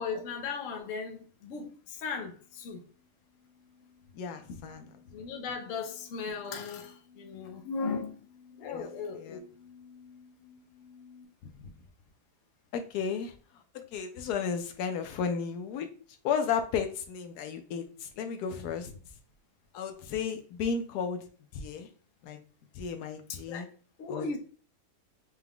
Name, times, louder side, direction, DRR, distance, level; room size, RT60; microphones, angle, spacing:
voice 1, 0.0-2.8 4.5-4.6 5.1-8.3 8.6-9.5 11.6-11.7 23.5-23.7 24.0-24.4, left 5 dB, 65° left, 1.0 m, -37 dB
sound 1, 1.8-11.2, left 6 dB, 20° left, 1.0 m, -58 dB
voice 2, 4.1-4.9 8.6-9.4 12.7-15.9 16.2-18.9 19.7-21.3 21.5-21.9 22.2-22.4 22.7-23.7 24.1-24.4, left 6 dB, 85° left, 1.1 m, -34 dB
4.7 x 2.2 x 3.5 m
omnidirectional pair, 1.7 m